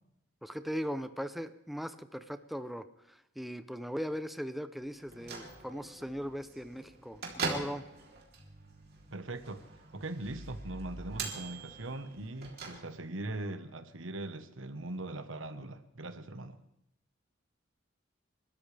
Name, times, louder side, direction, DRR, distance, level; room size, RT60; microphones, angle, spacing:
voice 1, 0.4-7.8, equal, ahead, 10 dB, 0.6 m, -39 dB
Bell / Microwave oven, 5.0-13.3, right 3 dB, 55° right, 3.3 m, -42 dB
voice 2, 9.1-9.6 9.9-16.6, right 2 dB, 80° right, 10 dB, 1.2 m, -40 dB
29.0 x 13.0 x 3.4 m, 0.80 s
head